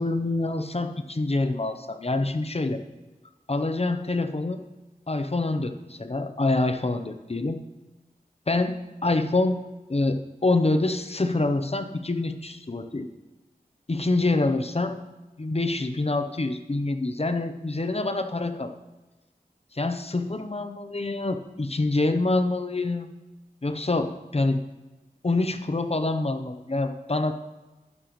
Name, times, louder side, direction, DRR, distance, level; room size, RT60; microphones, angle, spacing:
voice 1, 0.0-2.8 3.5-4.6 5.1-7.6 8.5-8.8 9.0-9.6 9.9-13.1 13.9-15.0 15.4-18.7 19.7-23.1 23.6-24.6 25.2-27.3, left 2 dB, 40° left, 8 dB, 0.7 m, -26 dB
11.0 x 10.0 x 3.1 m, 1.1 s
wide cardioid pair, 50°, 16 cm